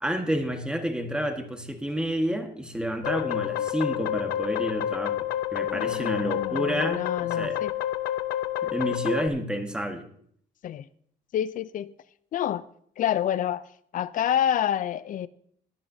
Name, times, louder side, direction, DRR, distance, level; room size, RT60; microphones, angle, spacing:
voice 1, 0.0-7.6 8.6-10.1, equal, 5° right, 1.5 m, -30 dB
sound 1, 3.0-9.3, left 12 dB, 75° left, 0.8 m, -29 dB
voice 2, 5.7-7.7 10.6-10.8 11.3-11.9 12.3-12.6 13.0-13.6 13.9-15.3, left 10 dB, 50° left, 0.5 m, -28 dB
18.5 x 11.0 x 2.8 m
cardioid pair, 110°, 17 cm